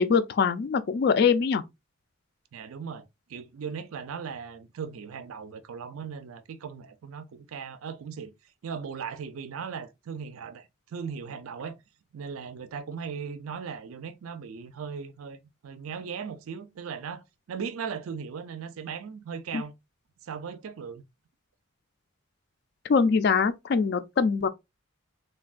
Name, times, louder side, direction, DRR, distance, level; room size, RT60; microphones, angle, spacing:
voice 1, 0.0-1.6 19.5-19.6 22.9-24.5, left 5 dB, 50° left, 0.3 m, -23 dB
voice 2, 2.5-3.0 3.3-8.3 8.6-11.8 12.1-19.7 20.2-21.0, right 6 dB, 80° right, 0.4 m, -38 dB
3.3 x 2.2 x 2.3 m
head